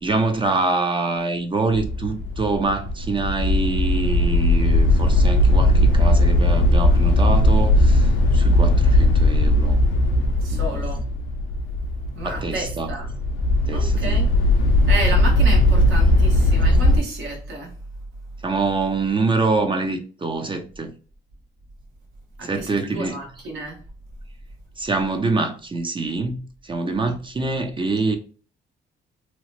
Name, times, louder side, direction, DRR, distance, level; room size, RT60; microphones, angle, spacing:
voice 1, 0.0-9.8 10.5-10.9 12.2-12.9 13.7-14.2 18.4-20.9 22.4-23.2 24.8-28.2, right 3 dB, 25° right, 0.4 m, -25 dB
sound 1, 1.7-17.0, left 1 dB, 85° left, 0.5 m, -18 dB
voice 2, 10.4-11.1 12.2-13.1 13.7-14.3 14.9-17.7 22.4-23.8 27.0-27.1, right 2 dB, 80° right, 1.0 m, -31 dB
2.9 x 2.0 x 2.9 m
cardioid pair, 90°, 20 cm